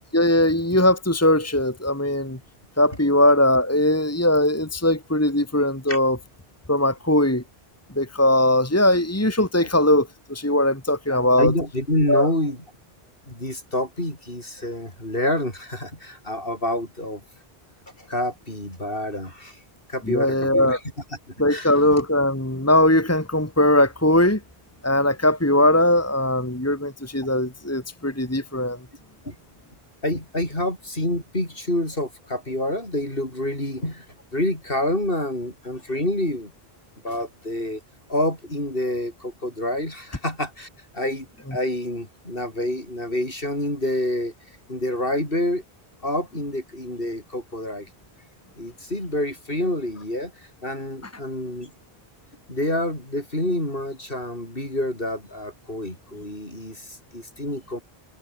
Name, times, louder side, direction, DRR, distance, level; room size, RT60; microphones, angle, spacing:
voice 1, 0.1-2.4 2.8-6.2 6.7-7.4 8.0-11.5 12.1-12.3 20.1-20.8 21.4-24.4 24.8-28.8, left 1 dB, 15° left, 2.5 m, -20 dB
voice 2, 11.4-12.6 13.3-17.2 18.0-19.6 19.9-20.8 21.5-21.7 29.2-29.3 30.0-34.0 34.3-36.5 37.0-37.8 38.1-40.7 40.9-44.3 44.7-45.6 46.0-47.9 48.6-50.3 50.6-51.7 52.5-57.8, left 1 dB, 60° left, 8.5 m, -27 dB
omnidirectional pair, 1.0 m